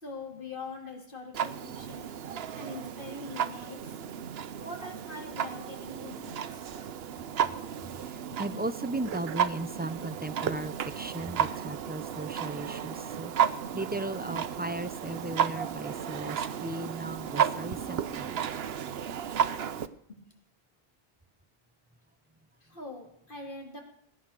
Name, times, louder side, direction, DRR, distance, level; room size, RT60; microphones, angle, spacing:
voice 1, 0.0-2.1 2.6-3.8 4.6-6.8 8.3-8.4 20.1-20.2 22.6-23.8, left 2 dB, 55° left, 1 dB, 3.1 m, -43 dB
Clock, 1.3-19.9, right 8 dB, 75° right, 1.0 m, -33 dB
voice 2, 8.4-13.3 13.7-18.4, right 2 dB, 15° right, 10 dB, 0.3 m, -36 dB
17.5 x 10.0 x 6.6 m, 0.72 s
omnidirectional pair, 1.1 m